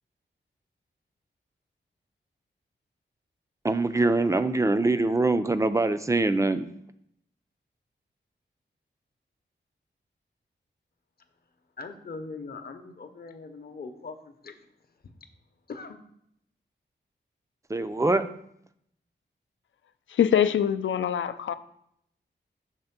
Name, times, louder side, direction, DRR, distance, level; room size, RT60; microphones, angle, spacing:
voice 1, 3.6-6.7 17.7-18.2, right 2 dB, 15° right, 11 dB, 0.3 m, -23 dB
voice 2, 11.8-14.6 15.0-15.1 15.7-16.0, left 4 dB, 50° left, 7 dB, 0.7 m, -41 dB
voice 3, 20.1-21.5, left 9 dB, 80° left, 12 dB, 0.4 m, -24 dB
6.5 x 3.5 x 5.8 m, 0.72 s
wide cardioid pair, 115°, 20 cm